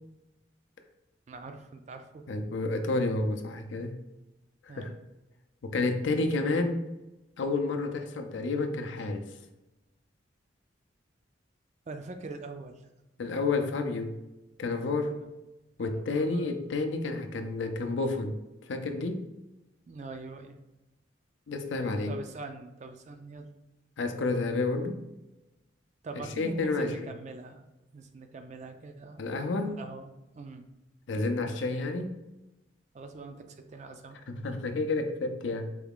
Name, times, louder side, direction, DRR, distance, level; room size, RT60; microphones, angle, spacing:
voice 1, 1.3-2.2 4.7-5.0 11.9-12.9 15.2-15.3 15.8-16.6 19.9-20.6 22.1-23.5 26.0-27.7 27.9-29.2 29.7-30.6 32.9-34.2, right 3 dB, 40° right, 7 dB, 0.4 m, -43 dB
voice 2, 2.3-4.0 4.6-4.9 5.6-6.8 7.4-9.3 13.2-14.2 14.6-15.2 15.8-18.4 18.7-19.3 21.5-22.2 24.0-25.0 26.1-27.1 29.2-29.8 31.1-32.2 34.3-35.7, left 3 dB, 80° left, 6 dB, 0.5 m, -30 dB
4.6 x 2.3 x 3.5 m, 1.0 s
head